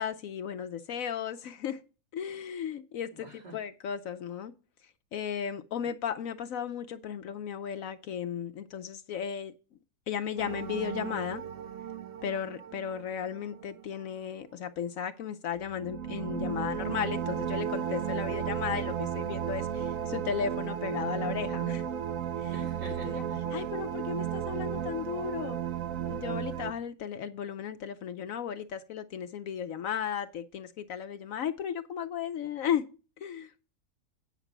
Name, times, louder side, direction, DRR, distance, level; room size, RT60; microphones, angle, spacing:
voice 1, 0.0-1.8 2.1-4.5 5.1-9.5 10.1-11.4 12.2-21.9 22.4-22.7 23.1-23.2 23.5-25.6 26.1-32.8 33.2-33.5, left 8 dB, 65° left, 0.9 m, -35 dB
voice 2, 3.1-3.6 22.5-23.7, right 1 dB, 80° right, 3.5 m, -47 dB
sound 1, 10.4-13.9 15.6-26.7, right 9 dB, 65° right, 0.9 m, -34 dB
9.3 x 5.9 x 5.9 m
omnidirectional pair, 1.7 m